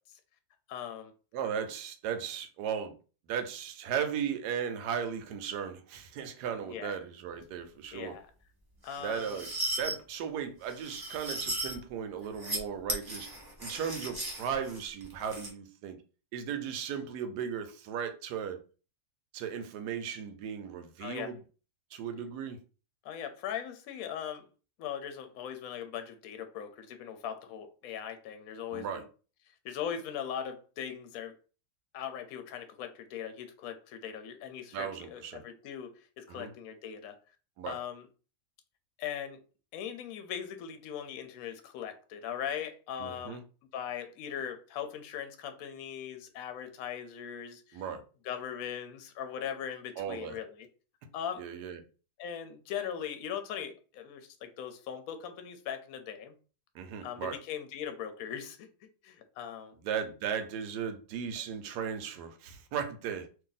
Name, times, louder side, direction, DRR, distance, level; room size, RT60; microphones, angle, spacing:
voice 1, 0.7-1.1 6.6-7.0 7.9-8.3 8.8-9.4 21.0-21.3 23.0-24.5 24.8-29.1 29.6-31.3 31.9-37.2 37.6-38.1 39.0-39.4 39.7-43.4 43.7-47.8 48.2-50.7 51.1-51.5 52.2-56.3 57.0-58.6 59.0-59.8, left 8 dB, 70° left, 1.0 m, -39 dB
voice 2, 1.3-2.9 3.3-8.2 9.0-9.5 9.8-13.3 13.6-16.0 16.3-18.6 19.3-21.4 21.9-22.6 28.7-29.0 34.7-35.4 36.3-36.5 37.6-37.8 43.0-43.4 47.7-48.0 50.0-50.4 51.4-51.8 56.7-57.4 59.8-63.3, right 7 dB, 85° right, 1.1 m, -36 dB
sound 1, 8.9-9.9 10.7-11.8 12.2-12.6 12.9-15.5, right 1 dB, 25° right, 0.5 m, -36 dB
2.6 x 2.6 x 3.9 m
omnidirectional pair, 1.7 m